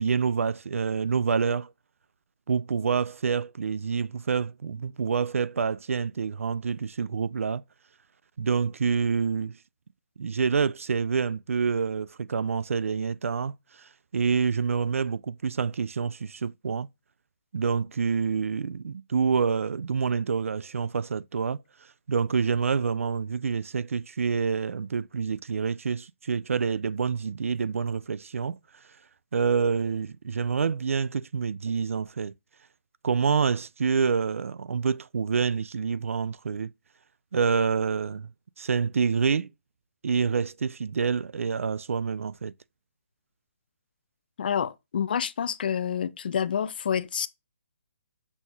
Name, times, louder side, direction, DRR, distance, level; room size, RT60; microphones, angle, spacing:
voice 1, 0.0-1.7 2.5-7.6 8.4-9.6 10.2-13.5 13.8-16.9 17.5-21.6 22.1-28.6 29.3-32.3 33.0-36.7 37.3-38.3 38.6-39.5 40.0-42.5, right 5 dB, 85° right, 0.4 m, -27 dB
voice 2, 44.4-47.3, left 8 dB, 45° left, 0.4 m, -28 dB
6.0 x 2.4 x 3.7 m
hypercardioid pair, 165°, 7 cm